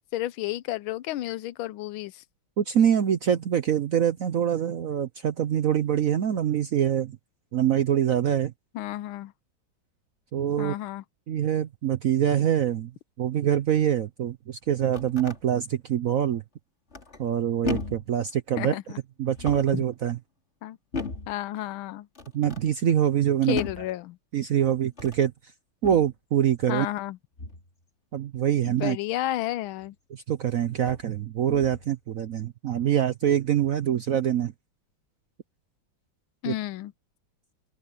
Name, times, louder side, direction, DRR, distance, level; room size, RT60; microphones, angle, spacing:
voice 1, 0.1-2.2 8.7-9.3 10.6-11.0 18.6-19.0 19.7-19.8 20.6-20.8 21.3-22.1 23.5-24.2 26.7-27.2 28.6-29.9 36.4-36.9, left 15 dB, 85° left, 1.5 m, -31 dB
voice 2, 2.6-7.2 7.5-8.5 10.3-10.7 11.3-12.9 13.2-16.4 17.2-18.8 19.2-20.2 22.3-23.6 24.3-25.3 25.8-26.9 28.1-29.0 30.1-34.5 36.4-36.6, right 10 dB, 65° right, 0.8 m, -24 dB
sound 1, 14.6-15.4 16.9-17.3 17.6-18.1 19.3-19.8 20.9-21.4 22.1-22.7 23.5-23.9 24.9-25.3 25.8-26.1 27.4-27.7 29.8-29.9 30.8-31.1 31.5-31.9, left 4 dB, 35° left, 2.9 m, -36 dB
open air
omnidirectional pair, 2.2 m